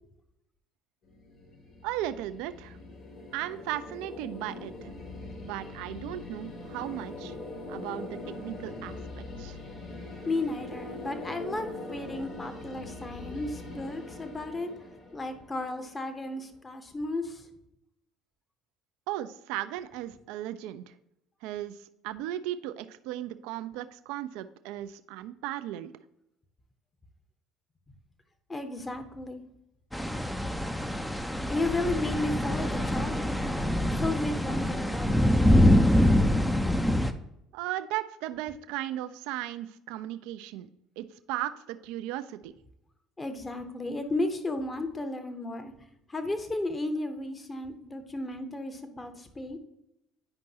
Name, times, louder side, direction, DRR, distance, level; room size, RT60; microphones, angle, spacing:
sound 1, 1.0-16.1, left 2 dB, 50° left, 2.3 m, -42 dB
voice 1, 1.8-2.8 3.3-4.9 5.4-7.4 7.7-9.0 9.4-9.6 19.1-20.9 21.4-21.8 22.0-25.9 37.5-40.7 41.0-42.5, right 13 dB, 70° right, 12 dB, 0.4 m, -36 dB
voice 2, 10.3-14.7 15.1-17.5 28.5-29.4 30.2-30.4 31.5-33.6 33.9-35.9 43.2-45.7 46.1-49.6, left 2 dB, 25° left, 8 dB, 1.0 m, -34 dB
sound 2, 29.9-37.1, left 1 dB, 5° left, 0.5 m, -25 dB
9.7 x 5.2 x 2.9 m, 0.84 s
hypercardioid pair, 60°, 0 cm